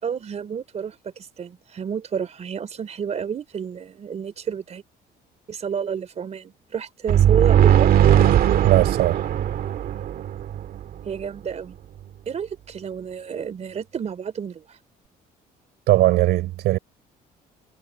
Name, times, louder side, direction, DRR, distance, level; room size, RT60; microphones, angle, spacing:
voice 1, 0.0-4.8 5.5-7.9 11.1-11.8 12.3-14.8, right 7 dB, 40° right, 3.8 m, -30 dB
sound 1, 7.1-10.8, right 10 dB, 60° right, 2.0 m, -18 dB
voice 2, 8.6-9.3 15.9-16.8, right 16 dB, 80° right, 5.4 m, -19 dB
cardioid pair, 110°, 17 cm